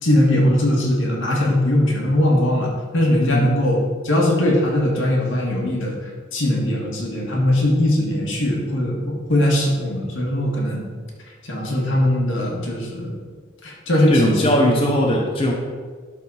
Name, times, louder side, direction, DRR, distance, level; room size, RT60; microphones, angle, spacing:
voice 1, 0.0-3.8 4.0-6.0 6.3-10.8 11.4-13.2 13.6-14.5, left 1 dB, 80° left, -1 dB, 1.9 m, -20 dB
voice 2, 14.1-15.5, equal, 30° left, -1 dB, 0.9 m, -19 dB
12.0 x 4.3 x 4.1 m, 1.5 s
head